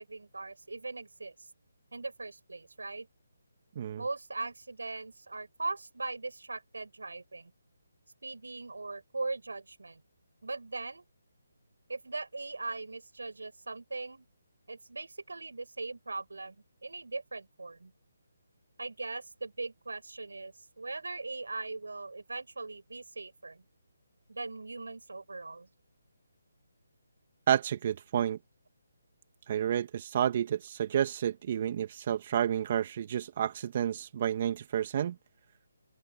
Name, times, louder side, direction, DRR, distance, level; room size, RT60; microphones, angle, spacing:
voice 1, 0.0-1.3 1.9-3.1 4.0-7.5 8.2-10.0 10.4-11.0 11.9-14.3 14.7-17.9 18.8-23.6 24.3-25.7, right 3 dB, 85° right, 6.9 m, -40 dB
voice 2, 27.5-28.4 29.5-35.2, right 9 dB, 40° right, 1.8 m, -30 dB
open air
figure-of-eight pair, 155°, 0 cm